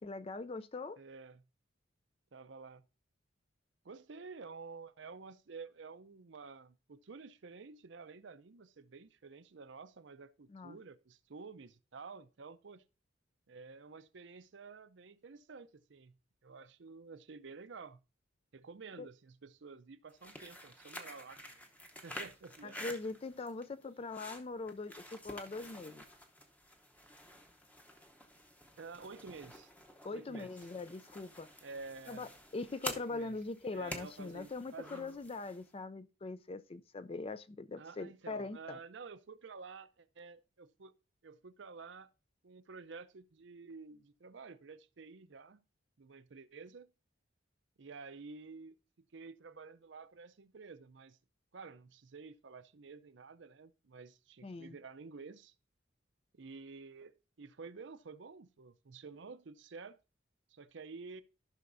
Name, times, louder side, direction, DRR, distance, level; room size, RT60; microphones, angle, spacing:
voice 1, 0.0-1.0 10.5-10.8 19.0-19.1 22.6-26.0 30.0-31.5 32.1-38.8 54.4-54.7, left 3 dB, 30° left, 0.4 m, -42 dB
voice 2, 1.0-1.4 2.3-2.8 3.8-12.8 13.5-16.2 16.4-18.0 18.5-21.6 22.0-22.8 28.8-29.7 30.1-30.5 31.6-32.3 32.9-33.4 33.7-35.2 37.8-41.0 41.2-42.1 42.4-45.6 46.0-46.9 47.8-48.7 49.1-51.2 51.5-55.5 56.3-60.0 60.5-61.2, right 4 dB, 65° right, 0.6 m, -51 dB
sound 1, 20.1-35.7, equal, 10° left, 0.8 m, -49 dB
14.5 x 5.7 x 2.6 m
head